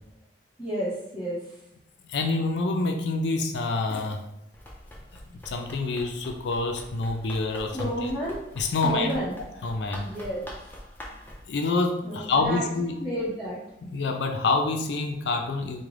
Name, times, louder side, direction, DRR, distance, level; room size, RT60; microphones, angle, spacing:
voice 1, 0.6-1.6 7.7-8.4 8.8-9.3 10.0-10.4 12.0-12.6 13.0-13.6, equal, 5° right, -15 dB, 1.4 m, -31 dB
voice 2, 2.1-4.2 5.1-7.9 8.6-9.1 9.6-10.1 11.5-13.0 13.8-15.8, left 3 dB, 80° left, 4 dB, 0.4 m, -27 dB
Run, 4.5-11.4, left 1 dB, 10° left, 0.4 m, -44 dB
3.6 x 2.1 x 3.2 m, 0.81 s
head